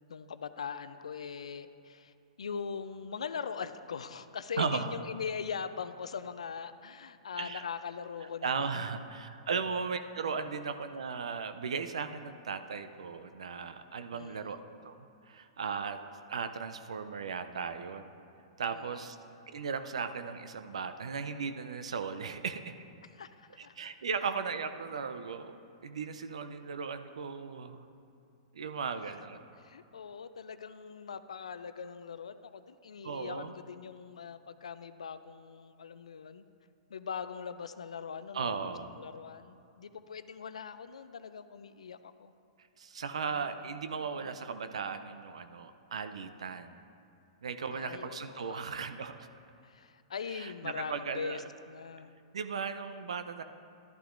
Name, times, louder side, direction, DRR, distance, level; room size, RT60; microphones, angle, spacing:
voice 1, 0.1-8.9 14.2-14.5 18.7-18.9 23.1-23.8 29.1-29.2 29.6-36.4 36.9-42.3 43.3-43.6 43.9-44.4 47.7-48.8 49.6-52.1, left 6 dB, 80° left, 12 dB, 0.4 m, -41 dB
voice 2, 4.6-4.9 7.4-7.6 8.4-14.6 14.8-18.1 18.6-19.2 19.5-22.7 23.6-27.9 28.5-29.4 33.0-33.5 38.3-38.9 42.8-46.8 47.4-49.3 50.3-51.4 52.3-53.4, right 5 dB, 75° right, 10 dB, 0.5 m, -37 dB
11.5 x 11.0 x 2.5 m, 2.5 s
hypercardioid pair, 110°, 3 cm